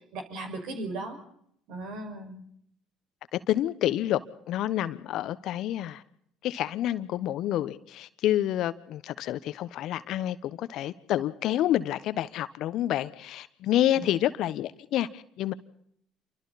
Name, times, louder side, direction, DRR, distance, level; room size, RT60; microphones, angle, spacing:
voice 1, 0.1-1.2 1.7-2.4 13.9-14.1, right 2 dB, 65° right, 5.7 m, -37 dB
voice 2, 3.3-4.2 4.5-6.0 6.4-15.5, left 12 dB, 60° left, 1.2 m, -28 dB
28.5 x 24.5 x 4.2 m
hypercardioid pair, 60°, 0 cm